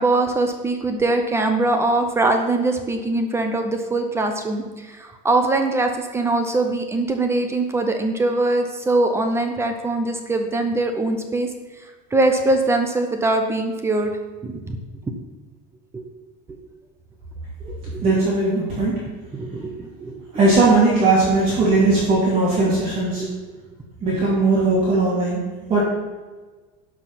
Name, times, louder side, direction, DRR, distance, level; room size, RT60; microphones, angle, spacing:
voice 1, 0.0-11.5 12.1-14.1 14.4-14.8 15.9-16.0 17.9-18.2 19.4-20.2 23.2-23.3, right 2 dB, 10° right, 5 dB, 0.7 m, -22 dB
voice 2, 18.0-19.0 20.3-23.2 24.0-25.8, right 3 dB, 30° right, -8 dB, 2.7 m, -18 dB
11.5 x 5.2 x 5.8 m, 1.3 s
cardioid pair, 165°, 21 cm